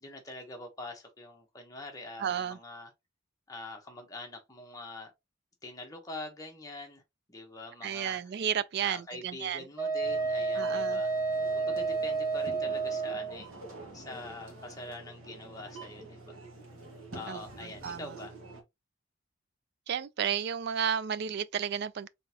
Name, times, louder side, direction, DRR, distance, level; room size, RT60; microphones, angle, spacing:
voice 1, 0.0-2.9 3.5-5.1 5.6-7.0 7.3-8.2 8.8-11.1 11.5-13.5 13.9-16.4 17.1-18.3, left 2 dB, 15° left, 1.0 m, -44 dB
voice 2, 2.2-2.6 7.8-9.7 10.5-11.0 17.3-17.4 17.8-18.1 19.9-22.1, right 8 dB, 50° right, 0.3 m, -32 dB
Wind instrument woodwind instrument, 9.8-13.3, right 4 dB, 15° right, 0.8 m, -30 dB
sound 1, 10.0-18.6, right 2 dB, 90° right, 1.5 m, -47 dB
3.8 x 3.6 x 2.9 m
head